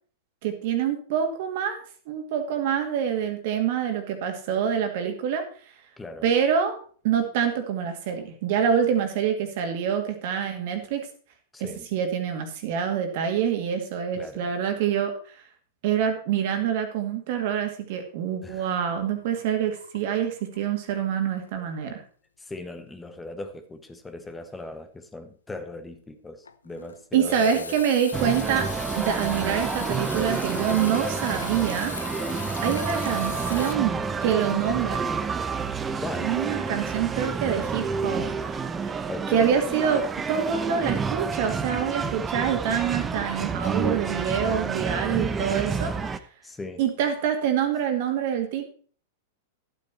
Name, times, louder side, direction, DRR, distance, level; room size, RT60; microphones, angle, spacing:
voice 1, 0.4-1.8 2.1-5.4 6.2-6.8 7.0-11.1 11.6-15.1 15.8-22.0 27.1-28.7 29.0-31.9 32.6-35.0 36.2-38.6 38.8-45.9 46.8-48.6, right 8 dB, 55° right, 6 dB, 2.2 m, -26 dB
voice 2, 11.5-11.9 14.1-14.5 18.4-18.8 22.4-27.8 32.8-33.1 36.0-36.4 39.1-39.5 45.1-45.4 46.4-46.8, left 2 dB, 10° left, 8 dB, 1.2 m, -39 dB
sound 1, 19.2-20.8 21.1-21.4 21.7-21.8 26.4-33.7, left 5 dB, 90° left, 0.6 m, -38 dB
sound 2, 28.1-46.2, right 5 dB, 20° right, 0.8 m, -29 dB
11.5 x 8.5 x 4.4 m, 0.43 s
hypercardioid pair, 105°, 0 cm